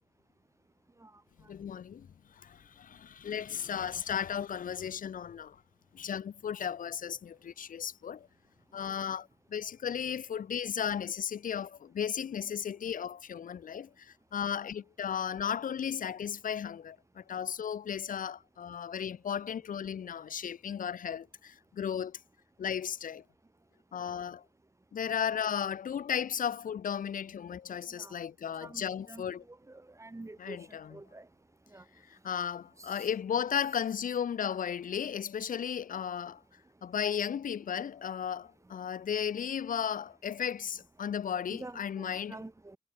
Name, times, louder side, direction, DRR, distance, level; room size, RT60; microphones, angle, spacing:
voice 1, 1.5-2.1 2.4-5.6 5.9-8.3 8.7-22.2 22.6-23.2 23.9-24.4 24.9-29.4 30.4-31.0 32.1-36.4 36.8-42.4, left 8 dB, 85° left, 4.1 m, -35 dB
voice 2, 28.6-31.3 31.7-31.8 32.8-33.1 41.5-42.8, right 2 dB, 20° right, 7.0 m, -48 dB
cardioid pair, 80°, 14 cm